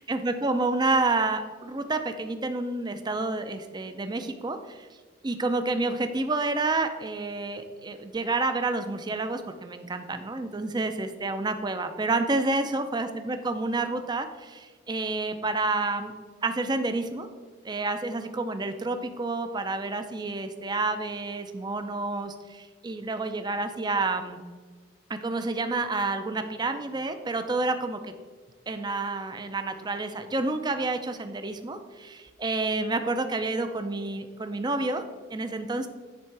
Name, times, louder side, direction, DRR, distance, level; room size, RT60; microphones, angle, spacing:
voice 1, 0.0-4.9 5.2-16.1 16.4-17.3 17.6-24.4 25.1-28.1 28.7-35.0 35.3-35.9, right 3 dB, 20° right, 8 dB, 0.5 m, -29 dB
10.5 x 3.6 x 4.6 m, 1.5 s
head